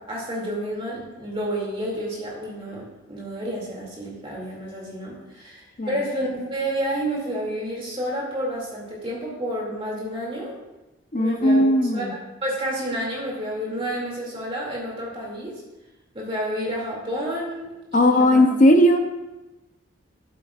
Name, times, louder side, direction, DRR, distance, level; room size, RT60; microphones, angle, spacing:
voice 1, 0.0-10.6 11.2-11.7 11.9-12.1 12.4-15.5 16.1-17.6 17.9-18.3, right 1 dB, 25° right, -4 dB, 2.5 m, -30 dB
voice 2, 11.1-12.1 17.9-19.0, left 1 dB, 40° left, 6 dB, 0.6 m, -17 dB
11.5 x 8.4 x 2.4 m, 1.0 s
head